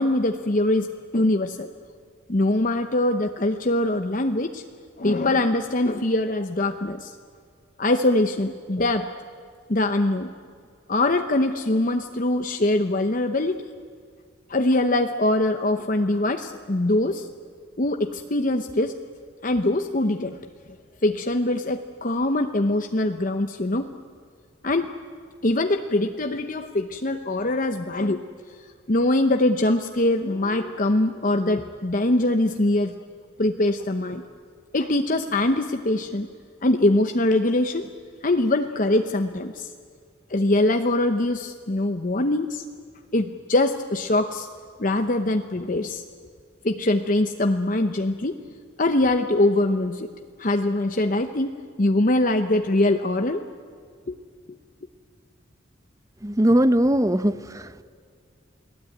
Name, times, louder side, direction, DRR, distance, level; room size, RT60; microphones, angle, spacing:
voice 1, 0.0-1.7 2.3-4.6 5.0-7.1 7.8-9.1 9.7-10.3 10.9-13.7 14.5-17.3 17.8-18.9 19.4-20.4 21.0-23.9 24.6-24.9 25.4-28.2 28.9-32.9 33.4-34.2 34.7-36.3 36.6-37.9 38.2-39.7 40.3-42.6 43.1-44.5 44.8-46.0 46.6-48.4 48.8-50.1 50.4-51.5 51.8-53.4 54.1-54.2, left 1 dB, 40° left, 6 dB, 0.9 m, -23 dB
voice 2, 56.2-57.8, right 1 dB, 15° right, 13 dB, 0.8 m, -20 dB
29.5 x 19.0 x 9.3 m, 2.1 s
head